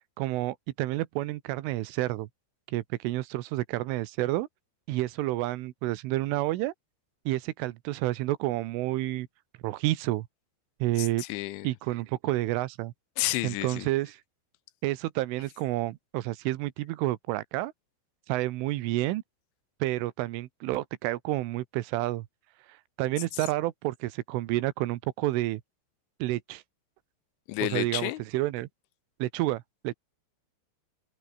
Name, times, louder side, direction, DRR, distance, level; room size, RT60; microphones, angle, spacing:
voice 1, 0.2-2.3 2.7-4.5 4.9-6.7 7.3-9.3 9.6-10.3 10.8-11.2 11.7-12.9 13.4-14.2 14.8-17.7 18.3-19.2 19.8-22.3 23.0-25.6 26.2-26.6 27.6-28.7 29.2-29.9, right 17 dB, 90° right, 3.6 m, -29 dB
voice 2, 11.0-11.7 13.2-13.9 27.5-28.2, left 19 dB, 85° left, 3.2 m, -31 dB
open air
omnidirectional pair, 5.5 m